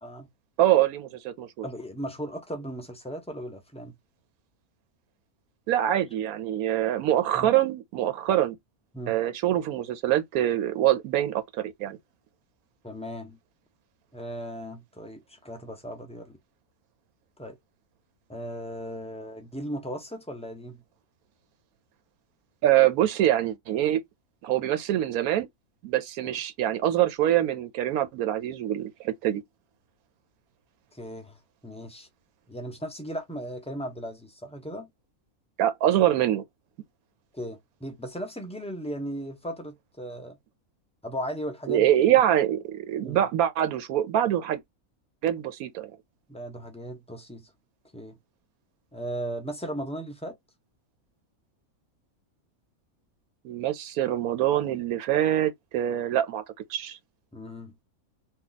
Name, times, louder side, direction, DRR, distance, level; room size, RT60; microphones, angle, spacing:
voice 1, 0.6-1.6 5.7-8.6 9.1-12.0 22.6-24.0 24.4-25.5 25.8-29.4 35.6-36.4 41.7-44.6 45.2-45.9 53.4-56.4 56.7-57.0, right 12 dB, 85° right, 1.1 m, -24 dB
voice 2, 1.6-3.9 7.3-7.5 8.9-9.2 12.8-13.4 14.1-16.4 17.4-17.6 18.3-20.8 26.2-26.4 30.9-32.1 32.5-34.9 37.3-40.4 41.0-41.9 43.0-43.2 46.3-47.5 47.9-48.2 48.9-50.4 57.3-57.8, equal, 10° left, 0.3 m, -37 dB
2.8 x 2.3 x 3.9 m
omnidirectional pair, 1.5 m